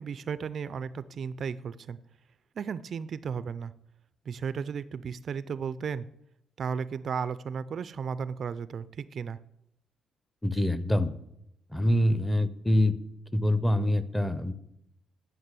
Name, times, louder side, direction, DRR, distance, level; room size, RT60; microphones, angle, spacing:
voice 1, 0.0-2.0 2.6-3.7 4.3-6.1 6.6-9.4, right 6 dB, 55° right, 16 dB, 0.4 m, -34 dB
voice 2, 10.4-11.1 11.7-13.0 13.3-14.5, left 1 dB, 5° left, 14 dB, 0.7 m, -25 dB
9.5 x 6.0 x 7.6 m, 0.79 s
cardioid pair, 90°, 0 cm